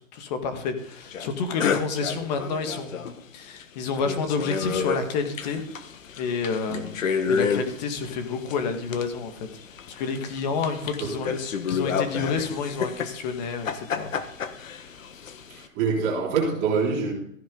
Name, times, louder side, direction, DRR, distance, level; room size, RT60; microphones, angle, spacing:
voice 1, 0.0-5.6 6.2-6.9 7.3-9.5 9.9-11.4 11.7-14.1, left 5 dB, 35° left, 6 dB, 1.9 m, -29 dB
sound 1, 1.1-1.3 1.6-3.2 3.6-3.7 3.9-15.7, left 6 dB, 75° left, 1.5 m, -31 dB
voice 2, 15.5-17.1, right 5 dB, 25° right, -2 dB, 3.3 m, -25 dB
14.5 x 10.0 x 3.9 m, 0.69 s
hypercardioid pair, 160°, 39 cm